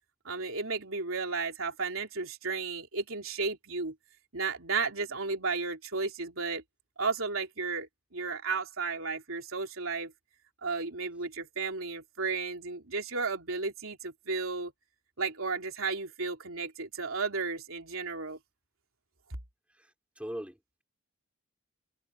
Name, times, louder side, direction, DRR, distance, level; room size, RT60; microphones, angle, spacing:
voice 1, 0.3-4.0 4.3-6.6 7.0-10.1 10.6-14.7 15.2-18.4, right 4 dB, 80° right, 3.4 m, -33 dB
voice 2, 19.7-20.8, equal, 5° right, 4.2 m, -42 dB
head